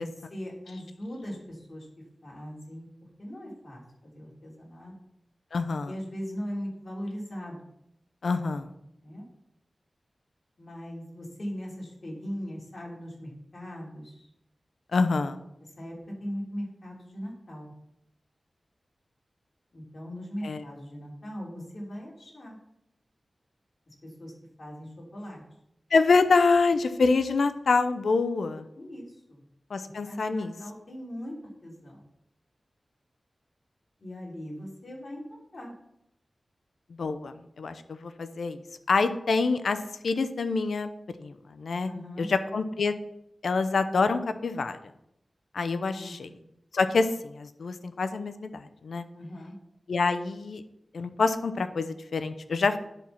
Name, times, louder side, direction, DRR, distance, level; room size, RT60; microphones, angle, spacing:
voice 1, 0.0-1.9 2.2-2.9 3.2-4.9 5.9-7.7 9.0-9.3 10.6-14.3 15.8-17.7 19.7-22.6 23.9-24.3 24.6-25.4 28.8-29.4 29.8-32.0 34.0-35.2 35.5-35.7 41.9-42.3 45.9-46.5 49.1-49.6, equal, 55° left, -3 dB, 3.5 m, -39 dB
voice 2, 5.5-5.9 8.2-8.7 14.9-15.4 20.4-20.6 25.9-28.7 29.7-30.5 37.0-38.6 38.9-39.8 40.0-40.9 41.2-41.9 42.2-42.9 43.4-44.8 45.5-46.3 46.7-49.0 49.9-50.6 50.9-52.8, left 4 dB, 90° left, 10 dB, 0.6 m, -26 dB
10.5 x 4.5 x 5.7 m, 0.80 s
wide cardioid pair, 60°, 0 cm